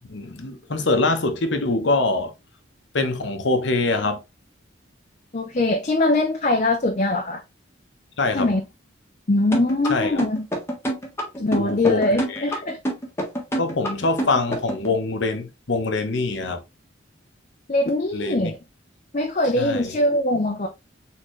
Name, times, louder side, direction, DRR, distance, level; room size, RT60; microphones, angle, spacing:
voice 1, 0.1-2.3 2.9-4.2 8.2-8.5 9.9-10.2 11.5-12.4 13.6-16.6 18.1-18.5 19.6-19.9, left 3 dB, 65° left, 0.9 m, -24 dB
voice 2, 5.3-7.4 8.3-8.6 9.3-10.5 11.4-12.8 17.7-18.6 19.1-20.7, left 2 dB, 35° left, 0.6 m, -22 dB
sound 1, 9.5-14.9, right 1 dB, 15° left, 1.2 m, -27 dB
4.5 x 3.7 x 3.0 m
head